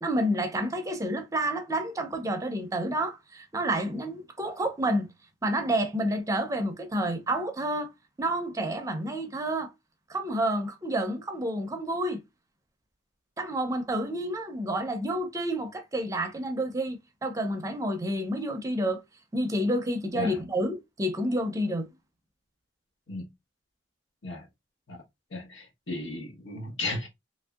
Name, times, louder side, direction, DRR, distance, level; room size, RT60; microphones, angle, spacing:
voice 1, 0.0-5.1 5.4-7.9 8.2-9.7 10.1-12.2 13.4-19.0 19.3-21.9, right 1 dB, 15° right, 0.4 m, -29 dB
voice 2, 25.3-27.1, left 2 dB, 75° left, 1.1 m, -35 dB
3.0 x 2.6 x 2.3 m
head